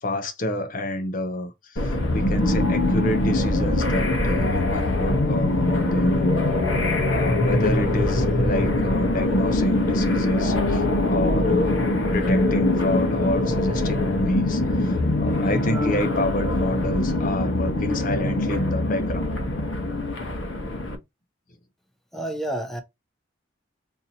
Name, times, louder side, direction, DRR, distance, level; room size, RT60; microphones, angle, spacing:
voice 1, 0.0-6.4 7.0-19.3, left 1 dB, 45° left, 0.6 m, -29 dB
sound 1, 1.8-21.0, left 2 dB, 70° left, 0.9 m, -23 dB
voice 2, 22.1-22.8, right 1 dB, ahead, 0.6 m, -29 dB
4.0 x 2.7 x 2.7 m
head